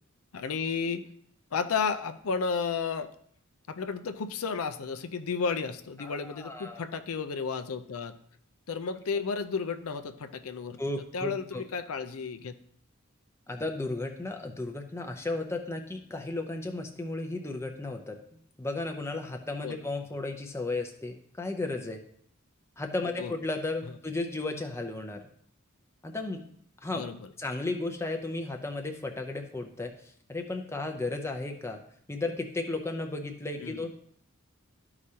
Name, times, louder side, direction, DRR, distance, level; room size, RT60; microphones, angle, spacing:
voice 1, 0.3-1.1 1.5-3.1 3.7-8.1 8.7-10.8 11.1-12.6 19.6-19.8 23.2-23.3 26.9-27.3 33.6-33.9, left 5 dB, 80° left, 9 dB, 0.5 m, -32 dB
voice 2, 6.0-6.8 10.8-11.6 13.5-18.2 18.6-22.0 22.8-25.2 26.0-26.4 26.8-27.1 27.4-29.9 30.3-31.8 32.1-33.9, left 2 dB, 10° left, 4 dB, 0.6 m, -34 dB
12.5 x 4.9 x 2.8 m, 0.64 s
head